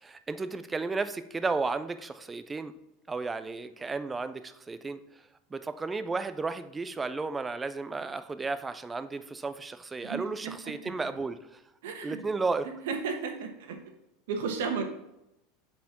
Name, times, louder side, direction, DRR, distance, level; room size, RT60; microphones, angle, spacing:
voice 1, 0.0-2.7 3.1-5.0 5.5-11.6 12.0-12.7, right 3 dB, 10° right, 11 dB, 0.4 m, -33 dB
voice 2, 10.0-10.7 11.8-12.2 12.9-13.8 14.3-14.8, right 5 dB, 85° right, 5 dB, 1.3 m, -33 dB
8.1 x 4.4 x 4.3 m, 0.87 s
supercardioid pair, 155°, 0 cm